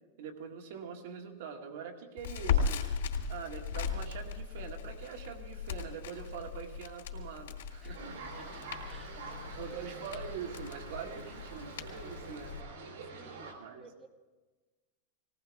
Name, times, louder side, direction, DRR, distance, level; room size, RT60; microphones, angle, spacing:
voice 1, 0.2-2.8 3.3-8.4 9.6-12.5 13.6-13.8, right 7 dB, 60° right, 2 dB, 1.9 m, -44 dB
Crackle, 2.2-12.6, left 6 dB, 85° left, 2.9 m, -37 dB
sound 1, 7.9-13.5, right 3 dB, 75° right, 3.8 m, -46 dB
voice 2, 8.3-9.9 13.1-13.5 13.8-14.1, right 4 dB, 15° right, 5 dB, 1.2 m, -56 dB
20.5 x 18.0 x 3.6 m, 1.3 s
supercardioid pair, 175°, 0 cm